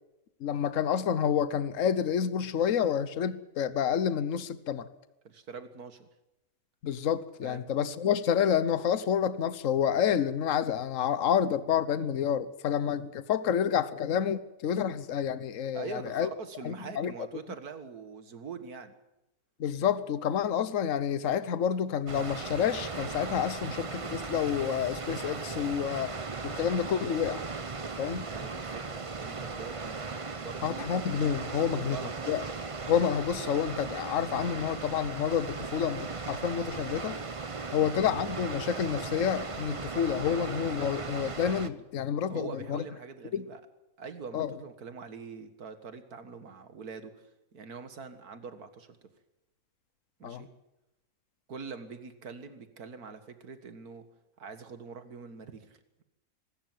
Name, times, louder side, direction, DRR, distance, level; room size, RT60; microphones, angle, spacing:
voice 1, 0.4-4.9 6.8-16.3 16.6-17.1 19.6-26.1 26.4-27.4 28.0-28.3 30.6-32.0 32.3-32.4 32.9-37.2 37.7-42.8 43.3-43.5 44.3-44.5 50.2-50.4, left 8 dB, 60° left, 15 dB, 1.3 m, -29 dB
voice 2, 5.2-6.1 7.4-7.6 15.7-18.9 28.3-29.9 30.4-30.9 31.4-32.1 42.3-43.6 44.0-47.2 47.5-49.0 50.2-50.5 51.5-54.0 54.4-56.0, right 5 dB, 85° right, 9 dB, 2.2 m, -43 dB
Water, 22.1-41.7, right 4 dB, 25° right, 0.8 m, -37 dB
24.0 x 13.5 x 9.3 m, 0.95 s
omnidirectional pair, 1.6 m